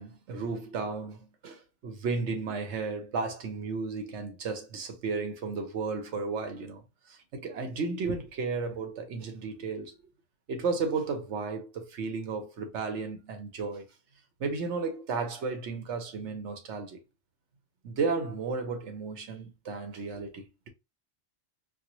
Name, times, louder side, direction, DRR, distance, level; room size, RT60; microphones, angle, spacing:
voice 1, 0.0-9.9 10.5-13.9 14.4-17.0 17.8-20.7, right 4 dB, 75° right, 1.1 m, -34 dB
4.5 x 2.1 x 2.9 m
omnidirectional pair, 1.2 m